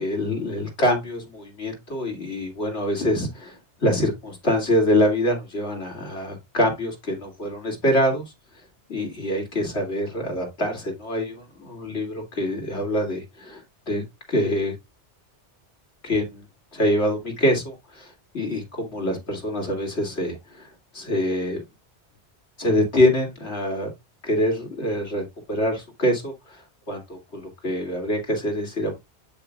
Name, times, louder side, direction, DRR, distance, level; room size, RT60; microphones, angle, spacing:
voice 1, 0.0-8.3 8.9-14.7 16.0-16.4 16.7-20.7 20.9-21.6 22.6-23.9 24.2-26.6 26.9-29.0, left 1 dB, 75° left, 3.1 m, -25 dB
7.9 x 6.7 x 2.4 m
omnidirectional pair, 1.2 m